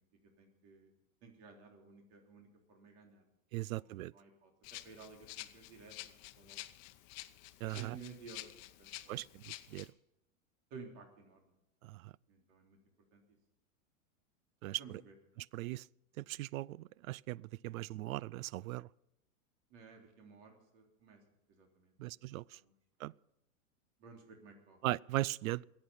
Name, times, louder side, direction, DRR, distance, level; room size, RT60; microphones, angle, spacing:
voice 1, 0.4-0.9 1.2-3.2 3.5-4.5 4.8-6.6 7.7-8.5 8.8-9.3 10.7-11.5 12.3-12.8 13.1-13.2 14.8-15.1 19.7-21.2 21.5-21.9 22.3-22.7 24.0-24.8, right 5 dB, 55° right, 3.6 m, -55 dB
voice 2, 3.5-4.1 7.6-8.0 9.1-9.9 11.8-12.1 14.6-14.8 15.4-15.8 16.2-18.9 22.0-22.6 23.0-23.1 24.8-25.6, right 17 dB, 80° right, 0.5 m, -39 dB
Rattle (instrument), 4.6-9.9, left 17 dB, 45° left, 0.9 m, -50 dB
21.5 x 8.8 x 5.6 m
hypercardioid pair, 135°, 41 cm